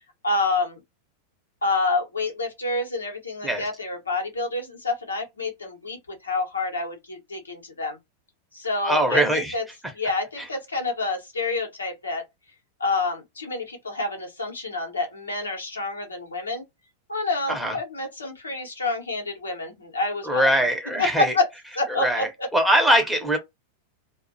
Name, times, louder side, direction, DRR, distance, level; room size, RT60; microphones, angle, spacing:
voice 1, 0.2-0.8 1.6-8.0 8.5-9.6 9.9-12.2 12.8-16.6 17.1-20.5 21.0-21.5 21.8-22.5, left 3 dB, 75° left, 0.8 m, -28 dB
voice 2, 8.8-9.5 17.5-17.8 20.2-21.3 21.9-23.4, right 1 dB, 5° right, 0.8 m, -22 dB
2.5 x 2.1 x 2.6 m
figure-of-eight pair, 90°, 0 cm